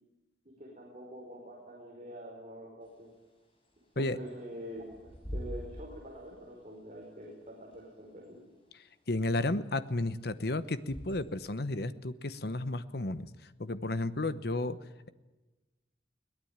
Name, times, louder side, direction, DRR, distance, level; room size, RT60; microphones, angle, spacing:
voice 1, 0.6-3.1 3.9-8.4, equal, 40° right, -2 dB, 4.9 m, -46 dB
Bird / Wind, 2.8-11.5, equal, 30° left, 6.0 m, -47 dB
voice 2, 9.1-13.3 13.6-14.8, left 2 dB, 60° left, 13 dB, 1.0 m, -32 dB
22.5 x 18.5 x 8.9 m, 1.1 s
head